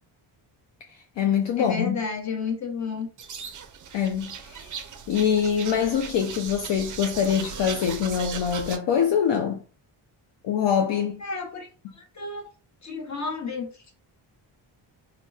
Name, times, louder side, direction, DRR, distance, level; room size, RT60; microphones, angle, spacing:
voice 1, 0.9-2.0 3.9-4.8 5.1-9.6 10.4-11.2, left 8 dB, 60° left, 0.5 m, -24 dB
voice 2, 1.6-3.1 11.2-11.7 11.9-12.4 12.8-13.9, left 5 dB, 35° left, 0.9 m, -31 dB
sound 1, 3.2-8.8, right 7 dB, 40° right, 0.4 m, -37 dB
2.9 x 2.3 x 2.3 m
cardioid pair, 70°, 50 cm